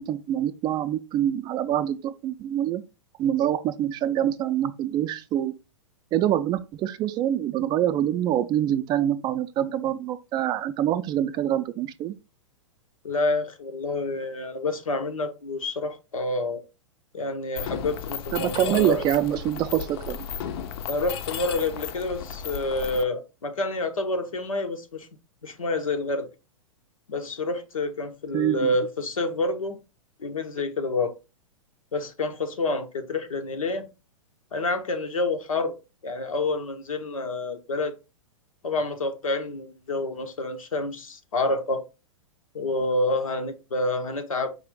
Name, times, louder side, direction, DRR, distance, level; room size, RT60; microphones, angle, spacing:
voice 1, 0.0-2.8 3.2-5.5 6.1-12.1 18.3-20.2 28.3-28.7, right 11 dB, 25° right, 0.4 m, -25 dB
voice 2, 13.0-16.6 17.1-19.0 20.9-25.1 25.4-26.3 27.1-29.8 30.2-31.1 31.9-33.9 34.5-35.7 36.0-37.9 38.6-41.8 42.5-44.5, left 2 dB, 85° left, 0.9 m, -28 dB
Mechanisms, 17.6-23.0, left 8 dB, 50° left, 0.5 m, -35 dB
4.8 x 2.4 x 3.6 m
hypercardioid pair, 110°, 17 cm